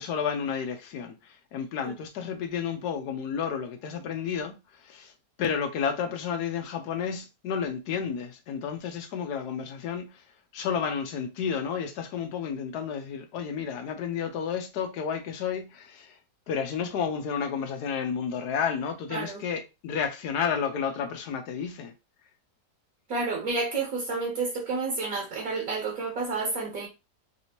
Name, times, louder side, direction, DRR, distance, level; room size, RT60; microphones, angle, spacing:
voice 1, 0.0-5.1 5.4-10.2 10.5-16.2 16.5-21.9, left 7 dB, 75° left, 1.1 m, -31 dB
voice 2, 19.1-19.4 23.1-26.9, right 3 dB, 55° right, 1.4 m, -30 dB
3.4 x 2.8 x 2.8 m
omnidirectional pair, 1.8 m